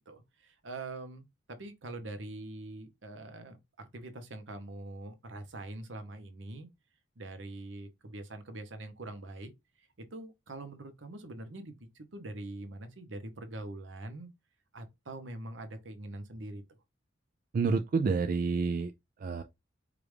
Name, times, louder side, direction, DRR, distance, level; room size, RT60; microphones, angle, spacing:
voice 1, 0.1-6.7 7.2-9.5 10.0-14.3 14.7-16.6, right 2 dB, 70° right, 0.9 m, -43 dB
voice 2, 17.5-18.9 19.2-19.4, right 4 dB, 45° right, 0.3 m, -28 dB
4.9 x 2.5 x 3.3 m
head